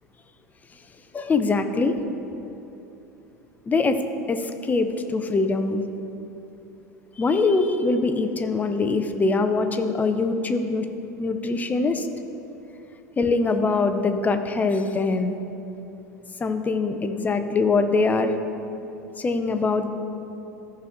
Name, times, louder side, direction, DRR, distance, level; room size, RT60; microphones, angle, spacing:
voice 1, 1.1-2.1 2.4-2.5 3.7-4.0 4.3-5.8 7.2-10.9 11.2-12.1 13.2-15.4 16.4-18.3 19.2-19.9, left 3 dB, 15° left, 8 dB, 0.6 m, -23 dB
14.0 x 6.1 x 3.0 m, 2.9 s
figure-of-eight pair, 75°, 9 cm